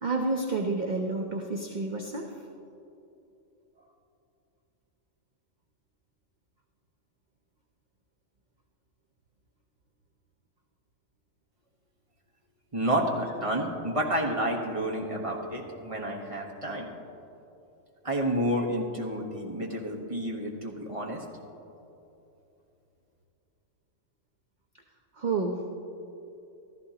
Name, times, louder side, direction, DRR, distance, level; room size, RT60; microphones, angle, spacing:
voice 1, 0.0-2.4 25.1-25.6, right 3 dB, 45° right, 2 dB, 0.7 m, -30 dB
voice 2, 12.7-16.9 18.0-21.2, right 1 dB, 25° right, -1 dB, 1.2 m, -30 dB
14.5 x 13.5 x 2.9 m, 2.8 s
omnidirectional pair, 1.3 m